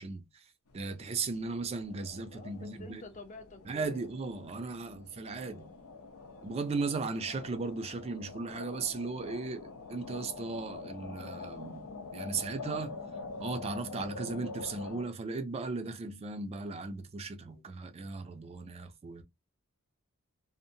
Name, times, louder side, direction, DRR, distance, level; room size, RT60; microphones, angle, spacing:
voice 1, 0.0-3.0 3.6-5.7 6.4-13.0 13.4-19.2, right 4 dB, 30° right, 0.3 m, -37 dB
sound 1, 0.7-15.0, left 4 dB, 90° left, 0.6 m, -45 dB
voice 2, 2.1-4.0 5.5-5.6 6.7-6.8 17.5-17.6, left 2 dB, 35° left, 0.5 m, -50 dB
2.6 x 2.0 x 2.6 m
head